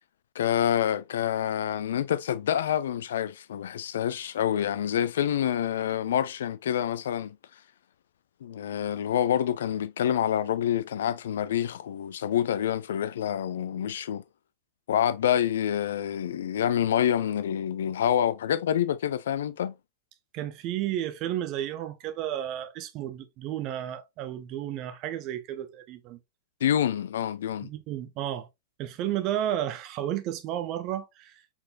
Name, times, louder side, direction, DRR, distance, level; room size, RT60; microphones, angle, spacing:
voice 1, 0.4-7.4 8.4-14.2 14.9-19.7 26.6-27.7, left 10 dB, 60° left, 0.3 m, -27 dB
voice 2, 20.3-26.2 27.6-28.5 28.8-31.3, right 11 dB, 40° right, 0.7 m, -32 dB
4.4 x 4.1 x 2.3 m
figure-of-eight pair, 90°, 0 cm